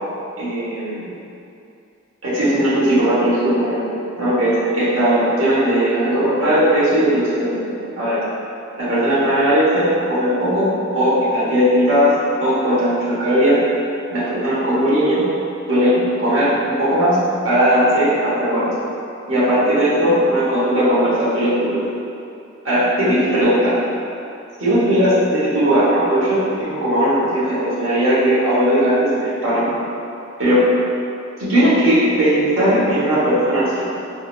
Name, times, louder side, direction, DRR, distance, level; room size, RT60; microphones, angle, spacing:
voice 1, 0.4-1.1 2.2-3.9 4.2-8.2 8.8-13.6 14.1-15.2 15.7-18.7 19.3-21.8 22.6-23.8 24.6-29.7 30.4-30.7 31.4-33.9, equal, 80° right, -9 dB, 1.1 m, -18 dB
3.6 x 3.1 x 2.5 m, 2.7 s
head